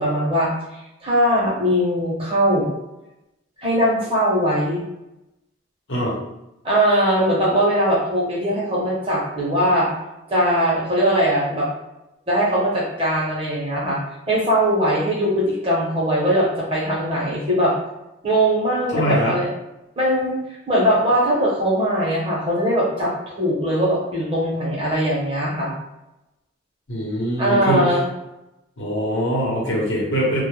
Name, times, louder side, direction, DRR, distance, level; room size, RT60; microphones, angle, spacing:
voice 1, 0.0-2.7 3.6-4.8 6.6-9.9 10.3-11.7 12.3-14.0 14.3-17.7 18.2-19.5 20.0-20.4 20.7-25.7 27.4-28.0, equal, 30° right, -5 dB, 0.7 m, -20 dB
voice 2, 18.9-19.4 26.9-27.8 28.8-30.4, right 1 dB, 75° left, -4 dB, 0.8 m, -22 dB
2.1 x 2.0 x 3.0 m, 0.91 s
head